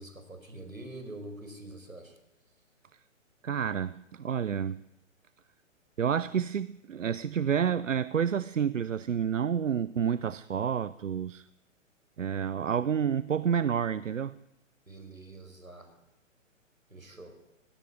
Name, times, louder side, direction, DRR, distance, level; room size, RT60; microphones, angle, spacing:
voice 1, 0.0-2.2 14.9-15.9 16.9-17.3, right 2 dB, 85° right, 4.8 m, -45 dB
voice 2, 3.4-4.8 6.0-11.5 12.2-14.4, right 8 dB, 70° right, 0.7 m, -29 dB
17.5 x 17.0 x 9.5 m
figure-of-eight pair, 125°, 40 cm